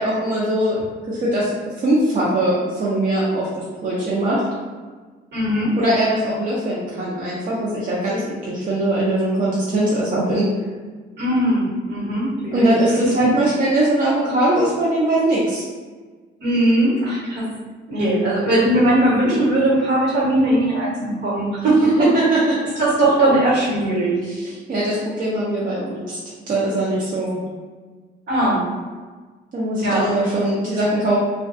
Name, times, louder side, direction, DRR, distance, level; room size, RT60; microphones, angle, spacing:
voice 1, 0.0-1.5 1.8-4.4 5.8-10.5 12.5-15.6 21.8-22.6 24.2-26.2 26.5-27.4 29.5-31.2, right 1 dB, 40° right, -7 dB, 0.5 m, -21 dB
voice 2, 5.3-5.7 11.2-12.7 13.2-13.3 16.4-17.5 17.9-22.1 22.8-24.2 28.3-28.6 29.8-30.0, right 1 dB, 60° right, -6 dB, 1.1 m, -19 dB
2.2 x 2.2 x 2.5 m, 1.4 s
cardioid pair, 90°, 20 cm